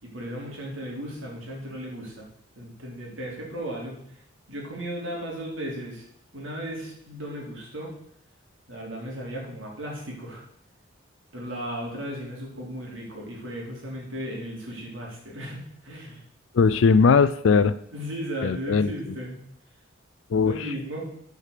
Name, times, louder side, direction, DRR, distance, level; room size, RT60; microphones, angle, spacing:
voice 1, 0.0-2.3 2.6-4.0 4.5-6.1 6.3-8.0 8.7-10.4 11.3-16.2 17.9-19.3 20.4-21.1, equal, 75° right, -2 dB, 3.5 m, -35 dB
voice 2, 16.5-17.7 18.4-18.9 20.3-20.7, left 5 dB, 75° left, 14 dB, 0.4 m, -19 dB
9.5 x 5.0 x 6.7 m, 0.69 s
head